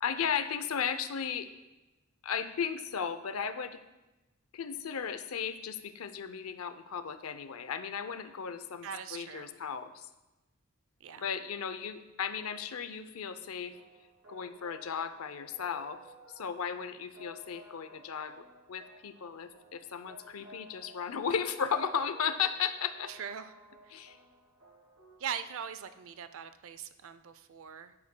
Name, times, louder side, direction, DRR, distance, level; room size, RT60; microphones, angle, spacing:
voice 1, 0.0-1.5 2.2-3.8 4.5-10.1 11.2-13.8 14.3-16.0 16.4-23.1 23.9-24.2, left 7 dB, 75° left, 11 dB, 0.5 m, -35 dB
voice 2, 8.8-9.6 11.0-11.3 23.1-23.5 23.8-24.0 25.2-27.9, right 8 dB, 65° right, 12 dB, 0.5 m, -41 dB
sound 1, 13.7-25.3, equal, 90° right, 3.0 m, -56 dB
10.0 x 9.5 x 2.2 m, 1.0 s
head